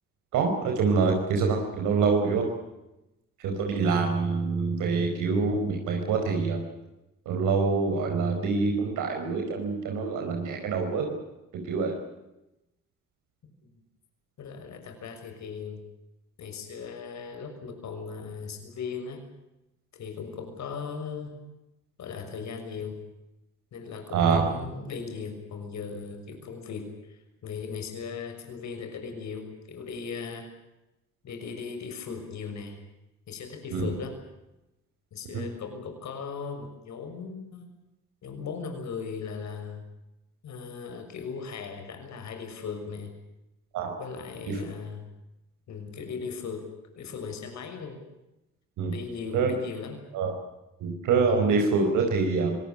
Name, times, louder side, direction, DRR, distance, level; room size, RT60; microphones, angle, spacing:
voice 1, 0.3-2.5 3.4-6.6 7.2-11.2 11.6-11.9 24.1-24.4 33.7-33.9 35.3-35.5 43.7-44.0 44.5-44.6 48.8-48.9 49.3-49.5 50.1-50.3 50.8-52.6, right 4 dB, 90° right, 2 dB, 4.8 m, -25 dB
voice 2, 14.4-15.8 16.4-19.2 19.9-21.3 22.0-23.0 23.7-30.5 31.2-32.8 33.3-34.1 35.1-37.7 38.2-39.8 40.4-43.1 44.0-45.1 45.7-46.7 46.9-48.0 48.9-50.0, left 5 dB, 65° left, 5 dB, 6.3 m, -38 dB
24.0 x 19.0 x 8.8 m, 0.93 s
cardioid pair, 90°, 30 cm